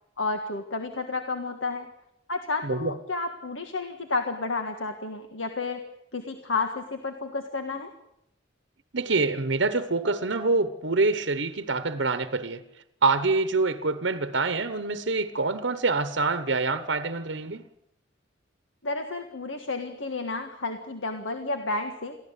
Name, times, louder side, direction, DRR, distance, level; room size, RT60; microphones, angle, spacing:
voice 1, 0.2-1.9 2.3-5.8 6.1-7.9 18.8-22.2, left 3 dB, 80° left, 1.7 m, -31 dB
voice 2, 8.9-12.6 13.0-17.6, right 3 dB, 65° right, 1.0 m, -26 dB
23.5 x 15.5 x 8.2 m
head